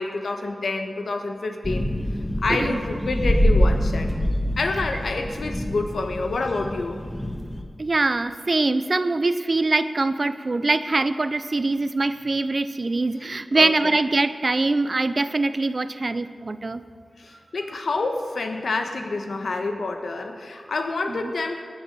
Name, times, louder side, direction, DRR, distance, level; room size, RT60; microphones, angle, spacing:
voice 1, 0.0-1.9 2.4-4.1 4.6-7.0 13.5-14.0 17.2-21.6, left 3 dB, 85° left, 5 dB, 1.3 m, -28 dB
sound 1, 1.6-7.6, equal, 5° left, 1.6 m, -25 dB
voice 2, 7.8-16.8 21.1-21.3, right 3 dB, 50° right, 12 dB, 0.6 m, -23 dB
19.5 x 7.1 x 6.8 m, 2.1 s
wide cardioid pair, 60°, 0 cm